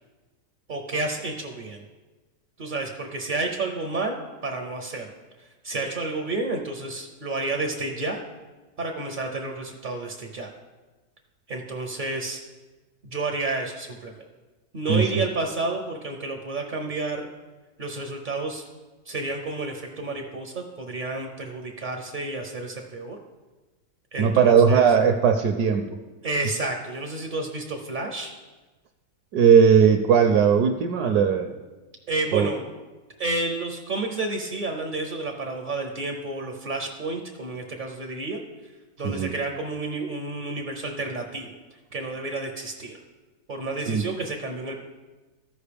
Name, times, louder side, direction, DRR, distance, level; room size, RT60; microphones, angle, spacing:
voice 1, 0.7-1.8 2.6-5.1 5.4-8.2 8.8-10.5 11.5-12.4 13.0-14.2 14.7-17.3 17.8-18.6 19.0-23.2 24.1-24.9 26.2-28.3 32.1-32.7 33.2-38.4 39.0-41.6 41.9-43.0 43.5-44.8, right 3 dB, 55° right, 3 dB, 0.5 m, -30 dB
voice 2, 24.2-25.8 29.3-31.6 32.3-32.5 39.0-39.3 43.9-44.0, right 7 dB, 75° right, 5 dB, 1.0 m, -18 dB
14.5 x 5.1 x 3.4 m, 1.2 s
omnidirectional pair, 1.8 m